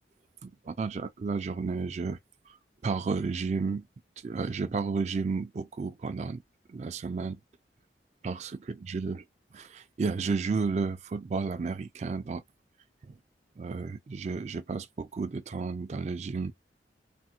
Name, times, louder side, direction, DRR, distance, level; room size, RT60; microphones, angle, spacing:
voice 1, 0.4-2.2 2.5-2.6 2.8-3.9 4.2-6.4 6.7-7.4 8.2-9.2 9.5-12.4 13.0-13.2 13.6-16.5, right 4 dB, 40° right, 0.3 m, -32 dB
3.4 x 2.1 x 2.8 m
head